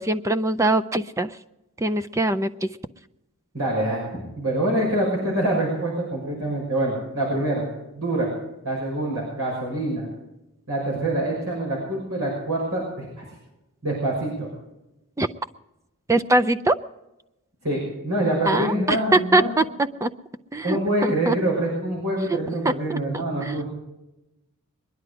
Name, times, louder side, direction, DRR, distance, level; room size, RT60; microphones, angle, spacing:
voice 1, 0.0-1.3 1.8-2.7 15.2-15.3 16.1-16.8 18.5-19.6 20.0-20.1 20.5-21.4 22.3-22.4 22.6-23.0 23.4-23.6, right 2 dB, 15° right, 10 dB, 0.4 m, -22 dB
voice 2, 3.5-7.7 7.9-8.3 8.6-10.1 10.7-13.1 13.8-14.5 17.6-19.5 20.6-23.6, right 1 dB, 80° right, -4 dB, 6.1 m, -25 dB
22.0 x 11.0 x 4.9 m, 0.94 s
head